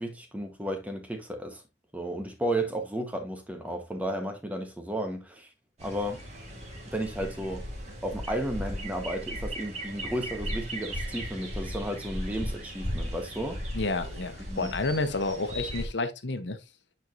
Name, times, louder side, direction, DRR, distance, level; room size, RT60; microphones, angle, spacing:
voice 1, 0.0-1.6 1.9-5.5 5.8-6.2 6.9-7.7 8.0-13.6 14.5-14.7, right 1 dB, 10° right, 1.0 m, -33 dB
sound 1, 5.8-15.9, equal, 40° right, 2.1 m, -37 dB
voice 2, 13.7-16.6, left 3 dB, 80° left, 0.9 m, -30 dB
9.2 x 4.4 x 2.5 m
head